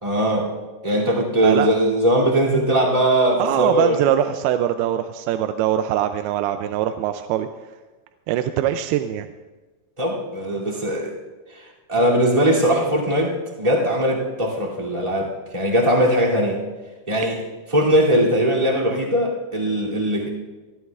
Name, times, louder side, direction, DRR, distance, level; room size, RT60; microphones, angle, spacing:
voice 1, 0.0-0.5 0.8-4.1 10.0-11.1 11.5-16.6 17.1-17.4 17.7-20.3, equal, 10° right, -2 dB, 2.0 m, -20 dB
voice 2, 3.4-7.5 8.3-9.3, right 11 dB, 90° right, 8 dB, 2.5 m, -22 dB
27.5 x 12.5 x 2.4 m, 1.2 s
omnidirectional pair, 4.4 m